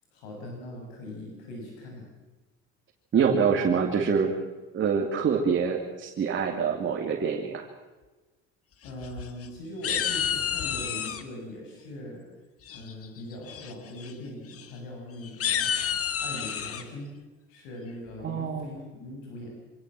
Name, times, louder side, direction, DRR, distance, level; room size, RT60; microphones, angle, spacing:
voice 1, 0.1-2.1 3.4-3.7 4.0-4.3 8.8-12.2 12.7-15.7 16.2-17.1 17.5-19.5, left 1 dB, 90° left, 0 dB, 6.8 m, -41 dB
voice 2, 3.1-4.3 4.7-7.7 18.2-18.7, right 6 dB, 40° right, 1 dB, 2.6 m, -25 dB
sound 1, 8.9-9.5 9.8-11.2 12.7-13.1 13.5-13.7 14.0-14.1 14.5-14.6 15.2-16.8, left 8 dB, 45° left, 1.9 m, -29 dB
25.0 x 18.0 x 7.6 m, 1.2 s
cardioid pair, 115°, 31 cm